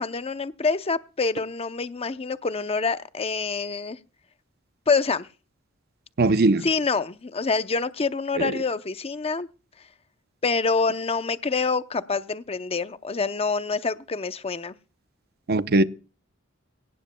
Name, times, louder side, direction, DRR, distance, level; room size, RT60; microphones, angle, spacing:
voice 1, 0.0-4.0 4.9-5.3 6.6-9.5 10.4-14.7, left 4 dB, 30° left, 0.6 m, -26 dB
voice 2, 6.2-6.6 8.4-8.5 15.5-15.8, right 2 dB, 50° right, 0.7 m, -20 dB
21.0 x 18.0 x 2.2 m
head